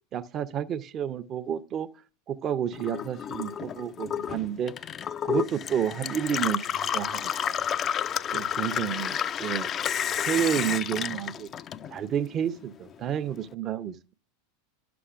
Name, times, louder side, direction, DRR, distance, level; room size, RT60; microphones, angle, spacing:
voice 1, 0.1-1.9 2.3-4.7 5.2-7.6 8.3-9.7 10.3-11.5 11.9-14.1, right 9 dB, 35° right, 0.6 m, -30 dB
Gurgling / Water tap faucet / Sink (filling or washing), 2.7-12.2 12.6-13.4, left 9 dB, 35° left, 0.3 m, -31 dB
11.0 x 6.9 x 2.4 m
hypercardioid pair, 90°, 0 cm